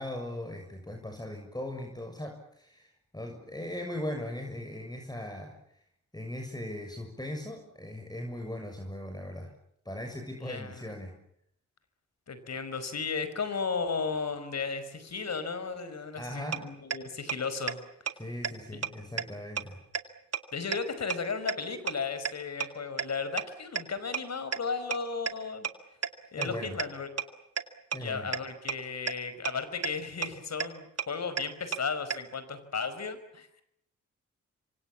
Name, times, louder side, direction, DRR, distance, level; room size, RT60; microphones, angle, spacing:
voice 1, 0.0-5.8 6.1-9.5 9.8-11.1 16.1-16.6 18.2-19.8 26.4-26.8 27.9-28.3, left 1 dB, 10° left, 3 dB, 6.9 m, -39 dB
voice 2, 10.4-10.9 12.3-17.8 20.5-25.7 26.3-27.1 28.0-33.5, left 5 dB, 55° left, 12 dB, 5.3 m, -34 dB
sound 1, 16.5-16.6 16.9-17.0 17.3-17.4 17.7-17.8 18.1-18.2 18.4-18.5 18.8-18.9 19.2-19.3 19.6-19.7 19.9-20.0 20.3-20.4 20.7-20.8 21.1-21.2 21.5-21.6 21.9-22.0 22.2-22.3 22.6-22.7 23.0-23.1 23.4-23.5 23.8-23.9 24.1-24.2 24.5-24.6 24.9-25.0 25.3-25.4 25.6-25.7 26.0-26.1 26.4-26.5 26.8-26.9 27.2-27.3 27.6-27.7 27.9-28.0 28.3-28.4 28.7-28.8 29.1-29.2 29.4-29.5 29.8-29.9 30.2-30.3 30.6-30.7 31.0-31.1 31.4-31.5 31.7-31.8 32.1-32.2, right 7 dB, 50° right, 2.5 m, -29 dB
28.0 x 25.0 x 7.3 m, 0.73 s
supercardioid pair, 45°, 31 cm